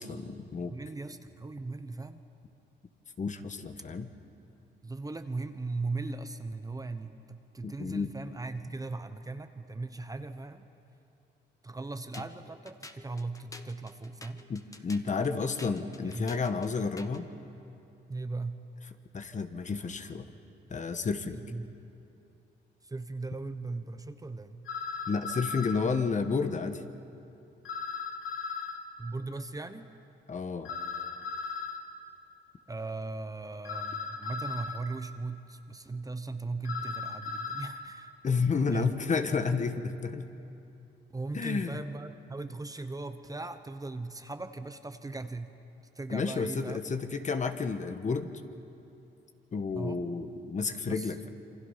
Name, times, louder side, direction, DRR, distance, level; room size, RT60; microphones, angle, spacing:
voice 1, 0.0-0.7 3.2-4.1 7.6-8.1 14.5-17.3 19.1-20.2 20.7-21.4 25.1-26.8 30.3-30.7 38.2-40.3 41.3-41.8 46.1-48.3 49.5-51.3, left 4 dB, 40° left, 8 dB, 1.4 m, -31 dB
voice 2, 0.7-2.2 4.8-10.6 11.6-14.4 15.9-16.3 18.1-18.6 21.3-21.7 22.8-24.6 29.0-29.9 32.7-38.1 38.7-38.9 41.1-45.5 45.9-46.8 49.7-50.0 50.9-51.1, right 3 dB, 15° right, 9 dB, 1.0 m, -38 dB
sound 1, 12.1-17.3, left 2 dB, 15° left, 1.3 m, -50 dB
sound 2, 24.6-25.8 27.6-28.8 30.6-31.8 33.6-34.8 36.6-37.7, left 5 dB, 80° left, 2.7 m, -37 dB
28.0 x 24.0 x 5.7 m, 2.7 s
cardioid pair, 90°, 20 cm